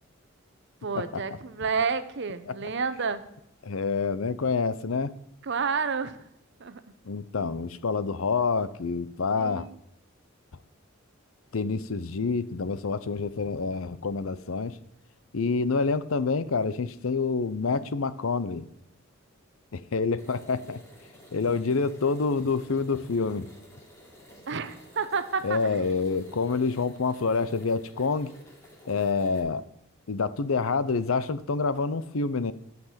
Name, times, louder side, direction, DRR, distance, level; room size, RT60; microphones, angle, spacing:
voice 1, 0.8-3.2 5.4-6.2 6.6-6.8 9.4-9.7 24.5-25.6, right 5 dB, 60° right, 12 dB, 0.8 m, -30 dB
voice 2, 3.6-5.1 7.0-9.7 11.5-14.8 15.3-18.7 19.7-20.8 21.3-23.5 25.4-28.3 28.9-29.7 30.1-32.5, left 4 dB, 80° left, 15 dB, 0.7 m, -27 dB
sound 1, 20.2-29.4, equal, 15° left, 2.6 m, -52 dB
11.5 x 6.0 x 7.4 m, 0.80 s
head